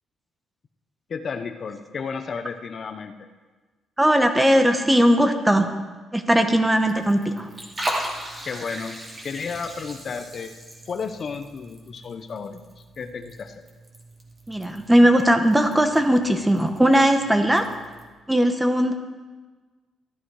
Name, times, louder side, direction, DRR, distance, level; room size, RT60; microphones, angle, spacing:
voice 1, 1.1-3.3 8.4-10.6 10.9-12.6 13.0-13.6, left 5 dB, 50° left, 7 dB, 0.8 m, -33 dB
voice 2, 4.0-5.7 6.1-7.5 14.5-17.7 18.3-18.9, equal, 10° right, 6 dB, 1.2 m, -19 dB
Liquid, 6.6-18.1, right 1 dB, 30° right, 2.4 m, -38 dB
13.5 x 11.0 x 4.8 m, 1.3 s
cardioid pair, 90°, 0 cm